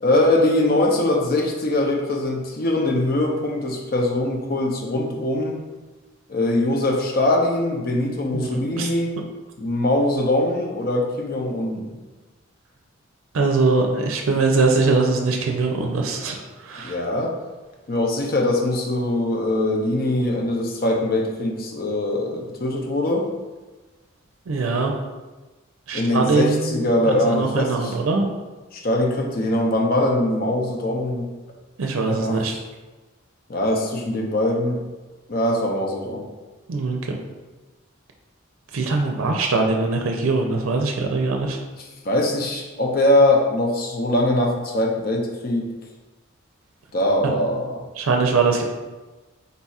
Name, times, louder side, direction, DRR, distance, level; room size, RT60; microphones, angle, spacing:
voice 1, 0.0-5.6 6.3-9.2 9.6-12.0 16.8-17.3 17.9-23.3 25.9-28.0 28.7-31.3 32.0-32.4 33.5-34.8 35.3-36.3 41.8-45.6 46.9-47.8, left 1 dB, 45° left, 1 dB, 0.6 m, -22 dB
voice 2, 8.3-8.9 13.3-16.4 16.6-17.0 24.5-24.9 25.9-28.3 31.8-32.5 36.7-37.2 38.7-41.6 47.2-47.3 48.0-48.6, right 3 dB, 85° right, 2 dB, 0.5 m, -22 dB
4.0 x 2.4 x 4.1 m, 1.2 s
head